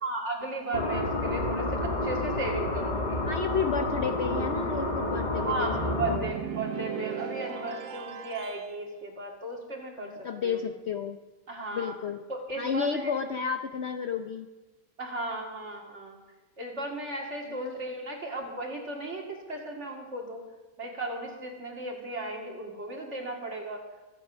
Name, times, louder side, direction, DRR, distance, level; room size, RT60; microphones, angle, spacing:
voice 1, 0.0-3.2 5.4-10.1 10.4-10.6 11.5-11.9 12.3-13.1 15.0-16.2 16.6-20.4 20.8-23.8, right 2 dB, 45° right, 0 dB, 2.8 m, -35 dB
sound 1, 0.7-6.2, left 2 dB, 30° left, 1.3 m, -29 dB
voice 2, 3.2-5.7 6.1-6.4 10.0-11.2 11.7-12.2 12.6-14.5 17.5-17.8, left 6 dB, 55° left, 7 dB, 0.8 m, -32 dB
sound 2, 5.7-8.7, right 8 dB, 85° right, 1.5 m, -37 dB
24.5 x 8.2 x 6.3 m, 1.2 s
omnidirectional pair, 1.7 m